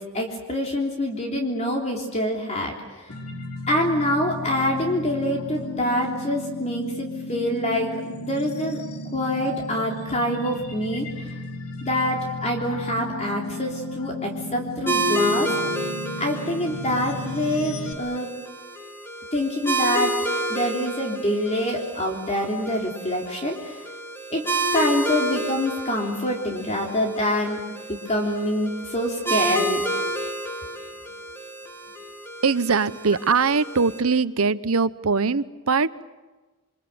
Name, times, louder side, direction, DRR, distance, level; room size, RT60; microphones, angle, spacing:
voice 1, 0.0-3.1 3.7-8.8 9.1-11.4 11.8-15.5 16.2-18.3 19.3-23.9 24.3-24.4 24.7-27.6 27.9-29.8, left 1 dB, 30° left, 0 dB, 3.4 m, -26 dB
sound 1, 3.1-17.9, left 1 dB, 90° left, 2.9 m, -34 dB
sound 2, 14.9-34.0, right 1 dB, 10° left, 2.7 m, -30 dB
voice 2, 32.4-35.9, right 5 dB, 75° right, 15 dB, 0.9 m, -21 dB
29.0 x 25.0 x 7.8 m, 1.2 s
head